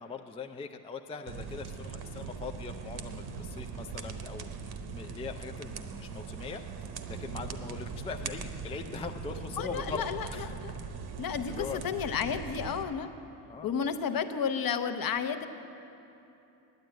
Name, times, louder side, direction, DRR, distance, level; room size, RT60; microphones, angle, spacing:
voice 1, 0.0-6.6 7.1-10.0 10.3-10.6 11.5-11.8 13.5-13.7, left 5 dB, 15° left, 5 dB, 0.3 m, -41 dB
sound 1, 1.3-12.8, right 5 dB, 50° right, 0.9 m, -40 dB
voice 2, 9.6-10.3 10.6-10.7 11.2-13.1 13.6-15.5, left 7 dB, 45° left, 9 dB, 0.8 m, -32 dB
9.4 x 8.8 x 9.1 m, 2.9 s
cardioid pair, 100°, 47 cm